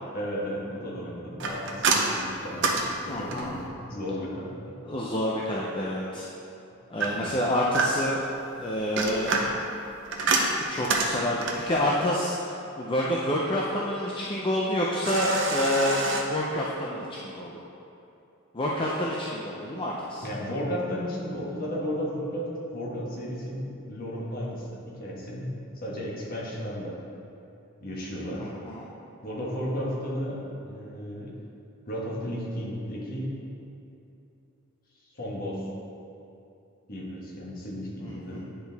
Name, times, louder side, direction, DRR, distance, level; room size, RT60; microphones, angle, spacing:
voice 1, 0.1-4.7 7.0-7.3 20.2-25.5 25.8-27.0 27.8-28.5 29.2-31.4 31.9-33.4 35.1-35.7 36.9-38.4, equal, 45° left, -4 dB, 1.4 m, -34 dB
sound 1, 1.4-3.7 7.0-8.2 8.8-11.7 15.0-16.2, right 3 dB, 60° right, 0.7 m, -27 dB
voice 2, 3.1-3.5 4.9-6.3 6.9-8.2 8.6-9.4 10.6-17.6 18.5-20.2 28.4-28.8 38.0-38.4, left 1 dB, 25° left, -4 dB, 0.5 m, -28 dB
9.8 x 4.5 x 3.5 m, 2.8 s
head